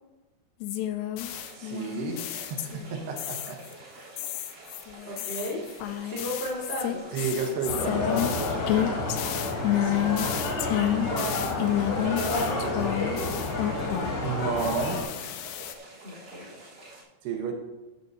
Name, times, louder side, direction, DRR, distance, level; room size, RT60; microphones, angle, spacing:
sound 1, 0.6-2.9 3.2-3.7 4.2-14.3 14.6-15.7, left 12 dB, 80° left, 2.5 m, -30 dB
sound 2, 1.3-17.0, right 2 dB, 40° right, 4.1 m, -48 dB
voice 1, 1.6-3.6 3.9-4.1 7.1-8.8 14.2-15.0 17.2-17.5, right 5 dB, 75° right, 2 dB, 3.1 m, -32 dB
voice 2, 5.0-5.6 6.1-7.0 11.0-12.8 16.0-16.5, equal, 30° left, -4 dB, 1.2 m, -35 dB
sound 3, 7.6-15.0, left 2 dB, 60° left, 4.0 m, -30 dB
13.5 x 9.1 x 2.8 m, 1.1 s
omnidirectional pair, 5.0 m